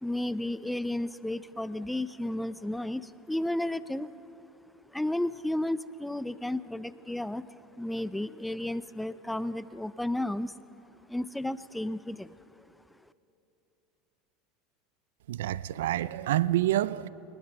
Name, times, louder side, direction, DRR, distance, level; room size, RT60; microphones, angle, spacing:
voice 1, 0.0-4.1 4.9-7.5 7.8-10.5 11.1-12.3, left 1 dB, 5° left, 0.5 m, -33 dB
voice 2, 15.3-17.1, right 14 dB, 85° right, 0.4 m, -27 dB
21.5 x 19.5 x 7.1 m
supercardioid pair, 105°, 0 cm